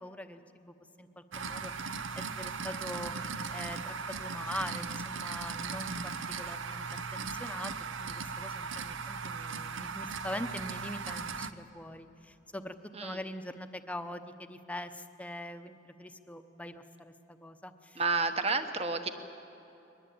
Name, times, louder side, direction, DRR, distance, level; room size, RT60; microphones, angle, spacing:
voice 1, 0.0-3.1 3.5-6.9 7.1-7.7 8.0-12.7 13.0-18.0, left 1 dB, 5° left, 9 dB, 0.8 m, -43 dB
sound 1, 1.3-11.5, right 5 dB, 85° right, 0.8 m, -38 dB
voice 2, 17.9-19.1, right 3 dB, 35° right, 8 dB, 1.3 m, -30 dB
22.5 x 20.0 x 8.7 m, 3.0 s
head